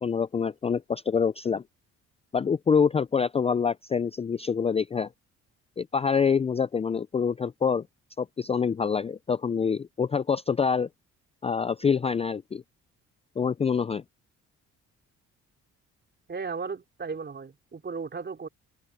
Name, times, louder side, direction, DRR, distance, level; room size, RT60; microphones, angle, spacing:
voice 1, 0.0-1.6 2.3-5.1 5.8-7.8 8.2-10.9 11.4-12.6 13.4-14.0, left 6 dB, 20° left, 0.4 m, -26 dB
voice 2, 16.3-18.5, right 5 dB, 35° right, 3.6 m, -35 dB
cardioid pair, 90°, 30 cm